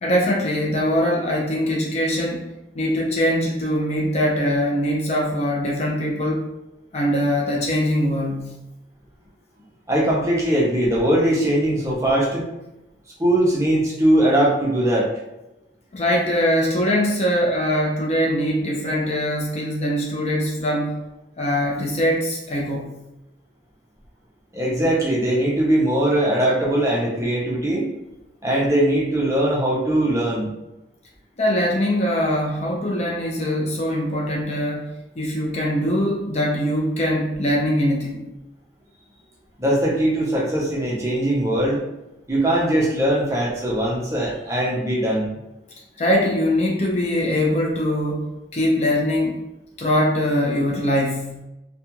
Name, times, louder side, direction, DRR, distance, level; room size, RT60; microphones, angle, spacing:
voice 1, 0.0-6.5 6.9-8.5 15.9-21.0 21.4-22.9 31.4-34.9 35.2-38.2 46.0-49.4 49.8-51.4, equal, 35° left, -2 dB, 0.4 m, -22 dB
voice 2, 9.9-12.4 13.2-15.1 24.5-27.9 28.4-30.5 39.6-41.8 42.3-45.3, right 1 dB, 15° right, -5 dB, 0.5 m, -20 dB
2.4 x 2.2 x 2.9 m, 0.92 s
head